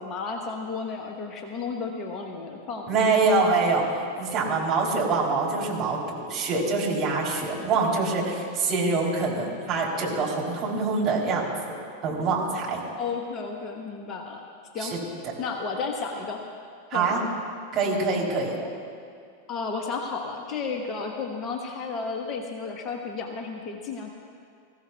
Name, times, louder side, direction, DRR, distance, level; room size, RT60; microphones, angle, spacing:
voice 1, 0.0-3.1 13.0-14.4 14.7-14.9 15.4-16.4 16.9-17.2 18.6-18.7 19.5-24.1, left 4 dB, 30° left, 2 dB, 1.2 m, -33 dB
voice 2, 2.9-11.8 12.0-12.8 14.8-15.0 16.9-17.2 17.7-18.6, right 3 dB, 30° right, -3 dB, 3.3 m, -25 dB
20.5 x 15.0 x 2.3 m, 2.3 s
figure-of-eight pair, 90°, 0 cm